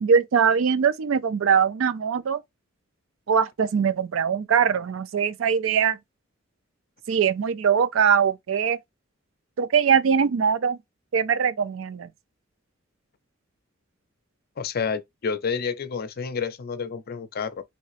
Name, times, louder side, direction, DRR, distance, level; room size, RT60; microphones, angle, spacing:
voice 1, 0.0-2.4 3.3-6.0 7.1-8.8 9.6-10.8 11.1-12.1, right 7 dB, 75° right, 0.4 m, -22 dB
voice 2, 14.6-17.6, left 6 dB, 50° left, 0.5 m, -29 dB
3.1 x 2.8 x 3.0 m
head